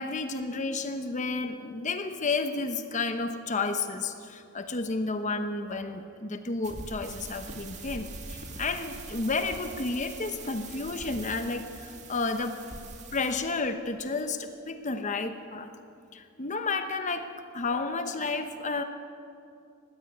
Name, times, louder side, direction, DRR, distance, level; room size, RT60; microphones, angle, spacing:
voice 1, 0.0-12.6 13.1-15.7 16.1-17.3 17.5-18.8, left 3 dB, 35° left, 8 dB, 0.9 m, -31 dB
sound 1, 6.6-13.3, right 3 dB, 35° right, 2.3 m, -43 dB
19.5 x 15.5 x 8.9 m, 2.5 s
head